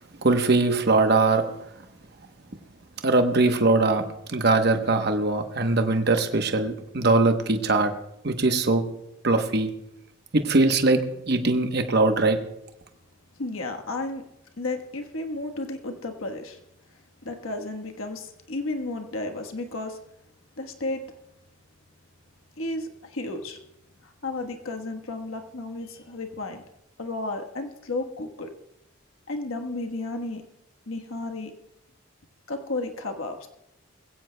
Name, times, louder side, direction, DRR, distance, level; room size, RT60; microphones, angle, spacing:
voice 1, 0.2-1.4 3.0-7.9 8.2-8.8 9.2-9.7 10.3-11.0 11.3-12.4, right 3 dB, 50° right, 6 dB, 1.0 m, -21 dB
voice 2, 13.4-14.2 14.6-16.6 17.2-20.0 20.6-21.0 22.6-23.6 24.0-26.6 27.0-28.5 29.3-30.4 30.9-31.5 32.5-33.5, left 2 dB, 80° left, 4 dB, 1.3 m, -33 dB
21.5 x 16.0 x 2.2 m, 0.85 s
head